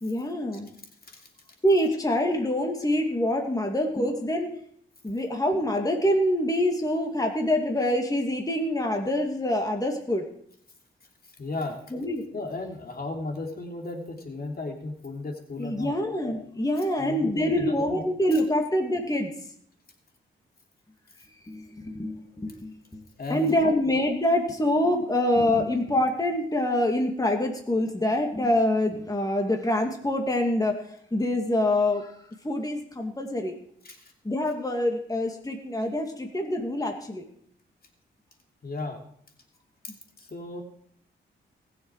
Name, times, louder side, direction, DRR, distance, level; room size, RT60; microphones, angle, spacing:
voice 1, 0.0-0.7 1.6-4.5 5.0-10.3 11.9-12.3 15.6-19.3 21.5-23.0 23.3-30.8 31.1-33.5 34.2-37.2, left 1 dB, 15° left, 2 dB, 2.5 m, -25 dB
voice 2, 11.4-11.8 12.3-15.9 17.0-18.0 23.2-23.7 33.8-34.1 38.6-39.0 39.8-40.6, left 2 dB, 45° left, 2 dB, 2.9 m, -35 dB
20.0 x 7.0 x 4.9 m, 0.65 s
cardioid pair, 60°, 21 cm